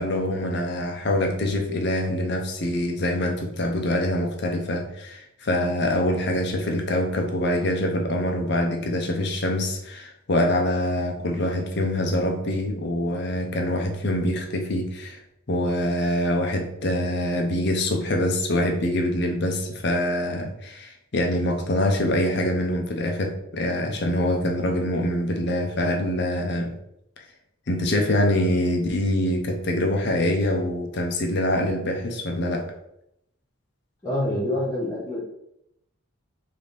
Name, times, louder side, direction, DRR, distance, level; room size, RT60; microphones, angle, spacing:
voice 1, 0.0-15.2 15.5-26.7 27.7-32.7, left 1 dB, 50° left, 3 dB, 0.6 m, -25 dB
voice 2, 34.0-35.2, left 1 dB, 15° left, -10 dB, 1.1 m, -26 dB
3.4 x 2.8 x 4.0 m, 0.80 s
head